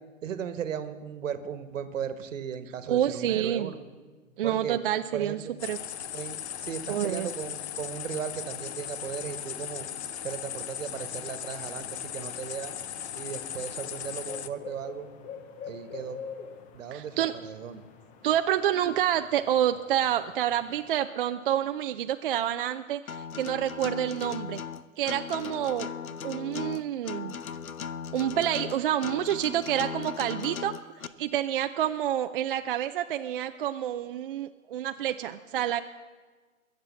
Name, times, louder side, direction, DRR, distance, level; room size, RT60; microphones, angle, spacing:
voice 1, 0.2-3.8 4.4-4.8 5.1-5.5 6.1-9.9 10.2-12.7 13.1-15.1 15.7-16.2 16.7-17.8, right 8 dB, 65° right, 12 dB, 1.4 m, -36 dB
voice 2, 2.9-3.7 4.4-5.4 5.7-5.8 6.9-7.3 16.9-17.3 18.2-24.6 25.0-25.9 26.2-27.4 28.1-35.8, right 11 dB, 40° right, 8 dB, 0.5 m, -28 dB
sound 1, 5.6-14.5, left 10 dB, 50° left, 0.8 m, -38 dB
sound 2, 10.8-20.9, left 6 dB, 20° left, 0.8 m, -47 dB
Acoustic guitar, 23.1-31.1, left 7 dB, 85° left, 0.8 m, -37 dB
22.0 x 7.4 x 7.4 m, 1.4 s
hypercardioid pair, 125°, 41 cm